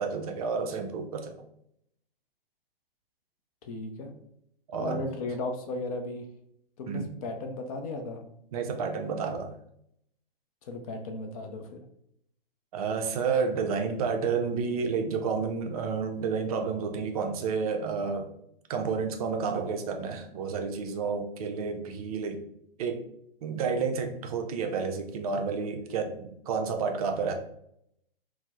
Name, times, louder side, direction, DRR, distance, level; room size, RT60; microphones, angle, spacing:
voice 1, 0.0-1.4 4.7-5.0 6.9-7.1 8.5-9.5 12.7-18.3 18.7-22.4 22.8-23.0 23.4-27.3, right 5 dB, 40° right, 4 dB, 0.4 m, -30 dB
voice 2, 3.6-4.2 4.8-6.3 6.8-8.2 10.6-11.8, left 2 dB, 40° left, 5 dB, 0.5 m, -36 dB
4.2 x 2.0 x 2.4 m, 0.74 s
hypercardioid pair, 130°, 29 cm